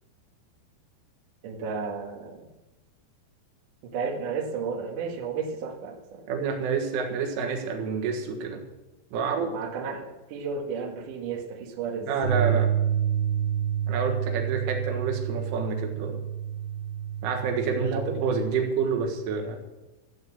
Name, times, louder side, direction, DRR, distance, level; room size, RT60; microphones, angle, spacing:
voice 1, 1.4-2.5 3.9-6.3 9.4-12.1 12.4-12.5 17.8-18.1, right 5 dB, 55° right, 2 dB, 2.7 m, -33 dB
voice 2, 6.3-8.6 9.1-9.6 12.1-12.7 13.9-16.2 17.2-19.6, right 5 dB, 90° right, 3 dB, 4.2 m, -28 dB
sound 1, 12.2-18.5, right 10 dB, 70° right, 4.8 m, -28 dB
15.0 x 8.2 x 7.5 m, 1.1 s
omnidirectional pair, 5.5 m